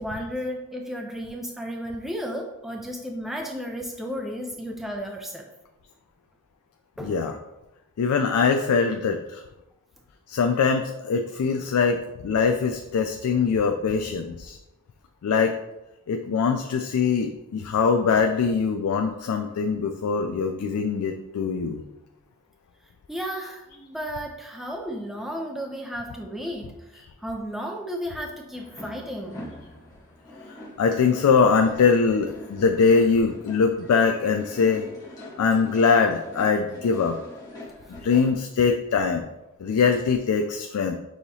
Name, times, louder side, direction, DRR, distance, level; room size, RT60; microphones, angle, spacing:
voice 1, 0.0-5.5 7.0-7.3 23.1-29.5, equal, ahead, 1 dB, 0.3 m, -33 dB
voice 2, 7.0-7.4 8.0-9.4 10.3-14.6 15.2-15.6 16.1-21.8 30.8-34.9 35.4-37.2 38.0-39.3 39.6-41.0, left 5 dB, 90° left, 5 dB, 0.4 m, -22 dB
sound 1, 28.5-38.4, left 1 dB, 15° left, 0.8 m, -43 dB
6.3 x 2.9 x 2.7 m, 0.95 s
head